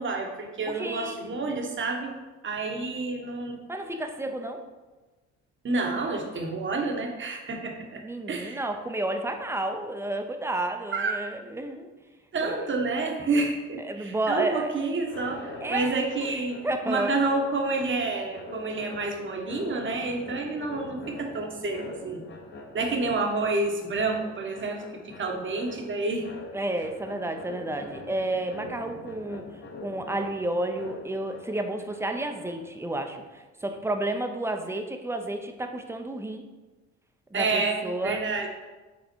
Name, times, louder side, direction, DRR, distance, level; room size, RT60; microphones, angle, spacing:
voice 1, 0.0-2.1 2.4-3.6 5.6-8.0 8.3-8.6 10.9-11.1 12.3-16.6 16.8-22.2 22.7-26.3 37.3-38.5, right 3 dB, 40° right, 2 dB, 1.1 m, -29 dB
voice 2, 0.7-1.4 3.7-4.6 8.0-11.9 12.4-12.7 13.8-14.7 15.6-16.0 16.3-17.2 26.5-29.4 29.8-36.4 37.3-38.2, right 1 dB, 10° right, 5 dB, 0.6 m, -31 dB
sound 1, 15.0-32.9, left 2 dB, 40° left, 1.1 m, -44 dB
5.5 x 3.9 x 4.5 m, 1.2 s
cardioid pair, 90°, 30 cm